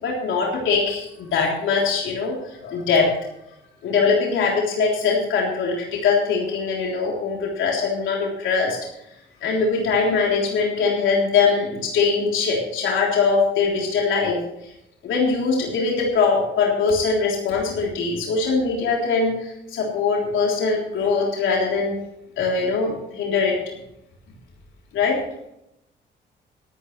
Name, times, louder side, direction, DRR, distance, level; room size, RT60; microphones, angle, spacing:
voice 1, 0.0-3.1 3.8-8.8 9.4-14.4 14.6-14.7 15.0-21.9 22.4-23.6 24.9-25.2, left 4 dB, 80° left, -2 dB, 3.5 m, -22 dB
13.5 x 13.0 x 3.3 m, 0.82 s
cardioid pair, 90°, 20 cm